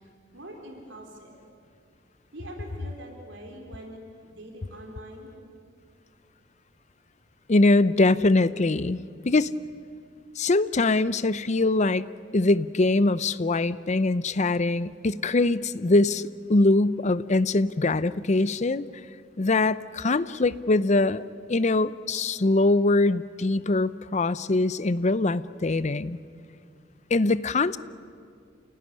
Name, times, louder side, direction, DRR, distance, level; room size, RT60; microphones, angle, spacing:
voice 1, 0.3-1.3 2.3-5.3, right 1 dB, 65° right, 1 dB, 4.0 m, -43 dB
voice 2, 7.5-9.0 9.2-9.5 10.4-12.1 12.3-18.8 19.4-21.2 21.5-26.2 27.1-27.8, left 2 dB, 35° left, 16 dB, 0.6 m, -23 dB
29.0 x 17.0 x 9.9 m, 2.2 s
head